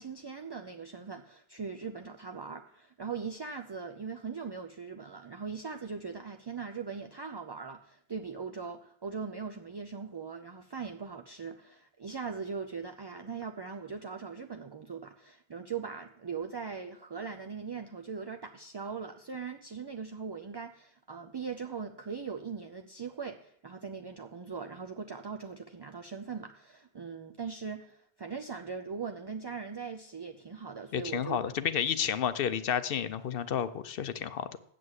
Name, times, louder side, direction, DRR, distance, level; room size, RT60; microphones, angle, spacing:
voice 1, 0.0-31.4, right 5 dB, 40° right, 6 dB, 0.4 m, -40 dB
voice 2, 30.9-34.5, left 8 dB, 65° left, 14 dB, 0.8 m, -31 dB
7.7 x 7.5 x 7.9 m, 0.69 s
omnidirectional pair, 1.0 m